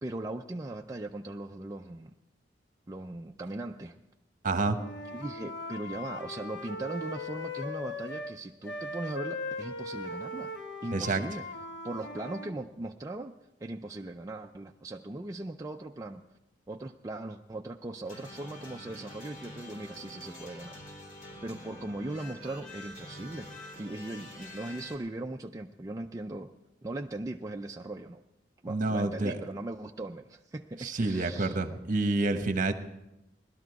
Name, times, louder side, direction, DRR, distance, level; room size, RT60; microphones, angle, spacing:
voice 1, 0.0-2.1 2.9-4.0 5.1-10.5 10.8-11.5 11.8-13.4 13.6-16.2 16.7-20.8 21.4-23.5 23.8-26.5 26.8-28.2 28.6-31.6, right 2 dB, 20° right, 2 dB, 0.4 m, -39 dB
voice 2, 4.4-4.8 10.9-11.2 28.7-29.3 30.8-32.7, right 3 dB, 45° right, 8 dB, 1.1 m, -28 dB
Wind instrument woodwind instrument, 4.7-8.4 8.6-12.5, left 2 dB, 70° left, 1.2 m, -39 dB
sound 1, 18.0-25.0, left 1 dB, 45° left, 3.3 m, -46 dB
18.0 x 12.0 x 4.7 m, 0.94 s
head